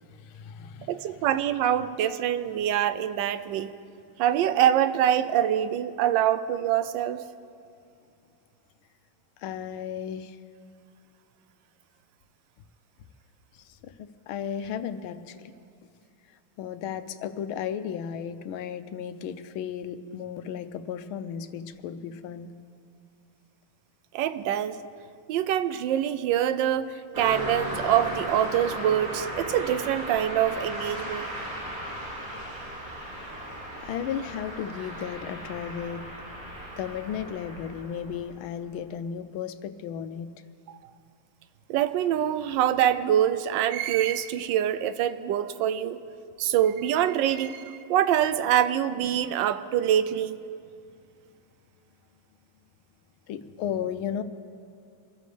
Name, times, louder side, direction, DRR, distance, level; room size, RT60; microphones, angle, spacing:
voice 1, 0.1-1.3 9.4-10.4 13.5-15.5 16.6-22.5 33.4-33.5 33.8-36.1 36.8-40.3 53.3-54.2, left 8 dB, 85° left, 11 dB, 1.6 m, -35 dB
voice 2, 0.9-3.7 4.2-7.2 24.1-24.8 25.3-31.3 40.7-40.8 41.7-46.0 46.4-50.4, right 10 dB, 75° right, 12 dB, 1.2 m, -25 dB
Car passing by, 27.1-38.6, equal, 40° right, 2.9 m, -36 dB
25.0 x 14.5 x 3.4 m, 2.4 s
omnidirectional pair, 2.2 m